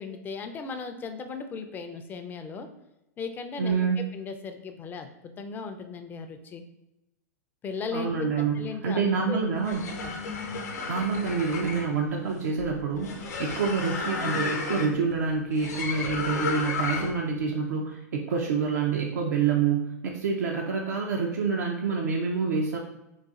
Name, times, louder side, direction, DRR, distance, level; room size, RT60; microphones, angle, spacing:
voice 1, 0.0-2.7 3.2-3.9 4.1-6.6 7.6-9.4 9.7-10.1, left 5 dB, 20° left, 7 dB, 0.4 m, -37 dB
voice 2, 3.6-4.0 7.9-9.8 10.9-22.8, right 5 dB, 75° right, 0 dB, 0.4 m, -27 dB
sound 1, 9.5-17.3, left 4 dB, 75° left, 0.7 m, -33 dB
4.0 x 2.4 x 2.3 m, 0.92 s
hypercardioid pair, 115°, 9 cm